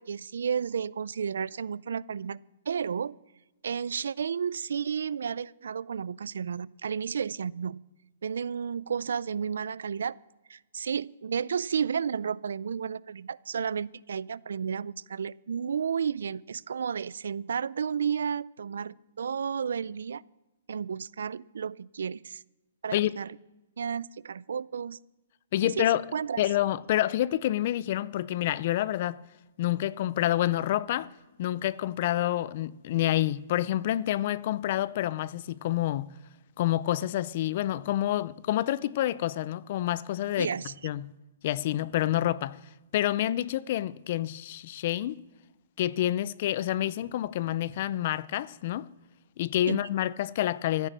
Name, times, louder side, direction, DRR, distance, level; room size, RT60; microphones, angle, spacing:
voice 1, 0.0-2.4 2.7-3.2 3.6-7.8 8.2-10.2 10.5-20.2 20.7-22.4 22.8-23.3 23.8-25.0 25.6-26.5 40.4-40.7 49.7-49.8, right 7 dB, 75° right, 0.4 m, -32 dB
voice 2, 25.5-26.0 26.4-29.2 29.6-31.1 31.4-36.1 36.6-40.5 40.8-41.1 41.4-42.6 42.9-45.2 45.8-48.9 49.4-50.9, left 13 dB, 35° left, 0.4 m, -28 dB
14.0 x 10.5 x 7.3 m
hypercardioid pair, 170°, 0 cm